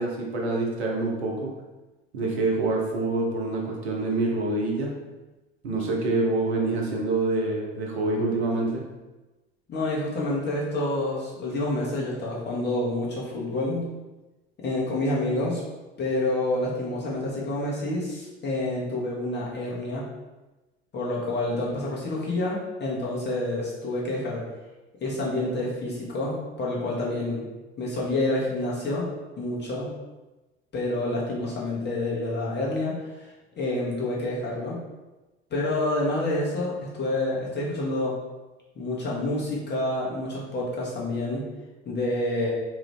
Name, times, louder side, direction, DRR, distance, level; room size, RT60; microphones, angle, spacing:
voice 1, 0.0-1.5 2.1-4.9 5.6-8.8, right 2 dB, 80° right, -1 dB, 0.7 m, -26 dB
voice 2, 9.7-13.8 14.6-15.6 16.0-20.1 20.9-24.4 25.0-27.4 27.8-29.1 29.4-29.9 30.7-33.3 33.6-34.8 35.5-38.1 38.7-41.4 41.8-42.5, left 2 dB, 35° left, -5 dB, 1.2 m, -28 dB
3.0 x 2.5 x 3.3 m, 1.1 s
figure-of-eight pair, 60°, 32 cm